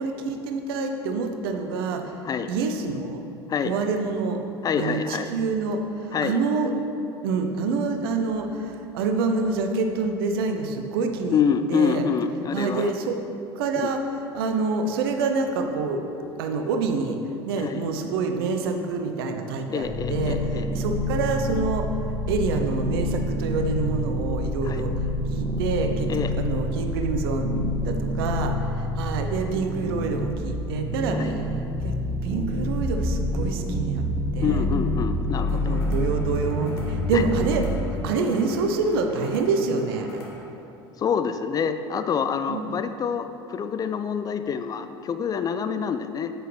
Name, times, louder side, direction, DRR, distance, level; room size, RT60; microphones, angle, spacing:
voice 1, 0.0-2.2 2.5-3.2 3.6-4.4 4.8-6.7 7.2-11.4 11.7-12.0 12.5-13.2 13.6-14.0 14.3-16.0 16.4-17.2 17.5-22.0 22.3-32.0 32.2-34.1 34.3-34.6 35.5-40.2 42.5-42.7, right 4 dB, 65° right, 5 dB, 0.7 m, -27 dB
voice 2, 4.6-5.3 6.1-6.4 11.3-12.9 13.8-13.9 17.6-17.8 19.7-20.7 24.7-24.8 26.1-26.3 31.2-31.3 34.4-35.8 37.1-37.2 41.0-46.3, left 6 dB, 30° left, 9 dB, 0.4 m, -26 dB
sound 1, 19.8-37.7, left 1 dB, 15° left, 1.4 m, -27 dB
sound 2, 35.3-40.4, left 2 dB, 75° left, 1.5 m, -44 dB
9.2 x 7.9 x 3.2 m, 2.8 s
figure-of-eight pair, 70°, 13 cm